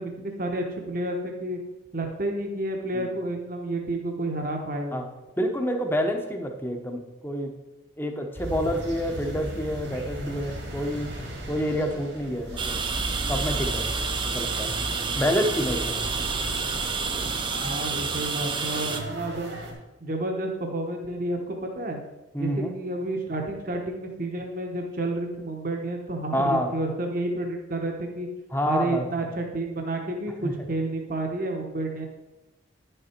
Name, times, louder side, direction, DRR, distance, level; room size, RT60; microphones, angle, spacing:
voice 1, 0.0-1.6 1.9-5.0 17.6-22.0 22.3-28.3 28.7-32.1, right 2 dB, 50° right, 2 dB, 1.1 m, -30 dB
voice 2, 5.4-7.5 8.0-11.1 11.5-12.8 13.3-13.9 14.2-14.7 15.2-16.0 22.3-22.7 26.3-26.7 28.5-29.3 30.4-30.7, equal, 10° left, 4 dB, 0.9 m, -28 dB
sound 1, 8.3-19.7, right 1 dB, 75° right, 2.3 m, -35 dB
sound 2, 12.6-19.0, right 5 dB, 25° right, 0.6 m, -29 dB
9.9 x 6.7 x 4.4 m, 1.0 s
head